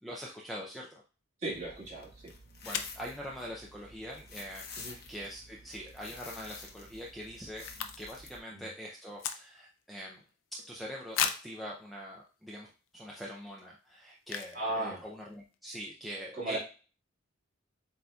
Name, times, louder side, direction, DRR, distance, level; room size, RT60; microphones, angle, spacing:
voice 1, 0.0-1.0 2.6-10.2 10.5-16.6, equal, ahead, -3 dB, 0.4 m, -43 dB
voice 2, 1.4-2.3 4.8-5.0 8.5-8.7 14.5-15.1 16.4-16.6, right 2 dB, 35° right, -5 dB, 1.9 m, -36 dB
sound 1, 1.5-8.4, left 3 dB, 50° left, 0.9 m, -50 dB
sound 2, 2.7-3.0 6.0-6.3 6.6-6.7 6.8-8.3 8.6-9.8 10.3-10.4 11.1-11.6 12.3-12.4 12.9-13.1 14.2-14.7 15.0-15.1 15.2-15.6, left 8 dB, 65° left, 0.4 m, -36 dB
7.6 x 2.7 x 2.3 m, 0.35 s
head